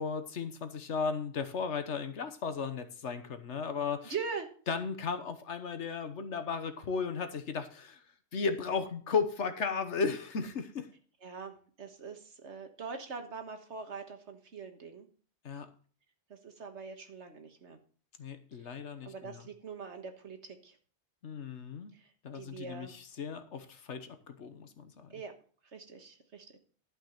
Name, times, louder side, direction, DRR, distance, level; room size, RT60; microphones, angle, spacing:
voice 1, 0.0-4.1 4.7-8.0 8.3-10.9 15.4-15.7 18.2-19.5 21.2-21.9 22.2-25.2, left 5 dB, 80° left, 9 dB, 1.4 m, -35 dB
voice 2, 4.0-4.5 11.2-15.1 16.3-17.8 18.6-18.7 19.0-20.8 21.9-22.9 25.1-25.3 25.7-26.6, right 5 dB, 75° right, 6 dB, 1.8 m, -43 dB
12.0 x 5.4 x 6.5 m, 0.43 s
omnidirectional pair, 1.2 m